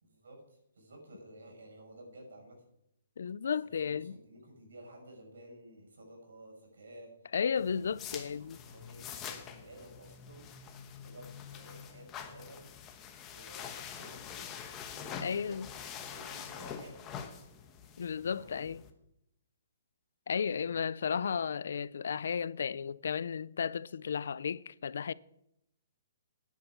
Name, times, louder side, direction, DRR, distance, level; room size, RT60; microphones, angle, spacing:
voice 1, 0.0-2.6 3.4-3.5 3.8-7.3 7.7-10.5 11.0-12.7 13.3-14.6 14.9-17.1 18.2-18.7 20.4-20.7, right 1 dB, 85° right, 6.0 m, -53 dB
voice 2, 3.2-4.1 7.3-8.6 15.2-15.7 18.0-18.8 20.3-25.1, left 7 dB, 70° left, 0.4 m, -34 dB
sound 1, 7.6-18.9, left 8 dB, 15° left, 1.1 m, -45 dB
10.0 x 9.1 x 7.3 m
hypercardioid pair, 165°, 0 cm